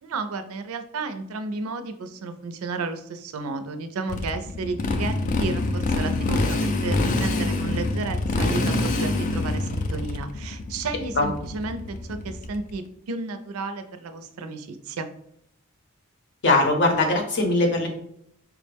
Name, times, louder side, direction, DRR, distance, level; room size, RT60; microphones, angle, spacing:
voice 1, 0.0-15.1, right 3 dB, 80° right, 9 dB, 0.4 m, -32 dB
Motorcycle, 4.1-12.7, left 2 dB, 35° left, 0.3 m, -25 dB
voice 2, 16.4-17.9, left 2 dB, 55° left, 4 dB, 0.7 m, -20 dB
4.6 x 2.1 x 3.3 m, 0.72 s
head